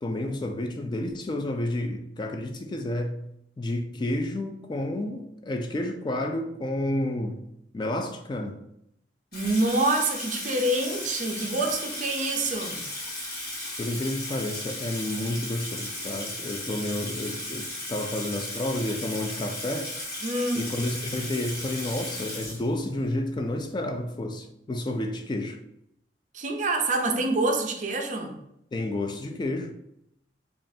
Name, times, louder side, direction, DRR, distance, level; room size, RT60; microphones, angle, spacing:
voice 1, 0.0-3.3 3.6-7.4 7.7-8.6 13.8-19.9 20.5-25.6 28.7-29.7, left 1 dB, 25° left, 0.3 m, -30 dB
Water tap faucet / Sink (filling or washing), 9.3-23.1, left 1 dB, 60° left, 1.2 m, -36 dB
voice 2, 9.3-12.8 20.2-20.6 26.3-28.3, right 2 dB, 45° right, 0.5 m, -26 dB
5.1 x 2.4 x 2.7 m
head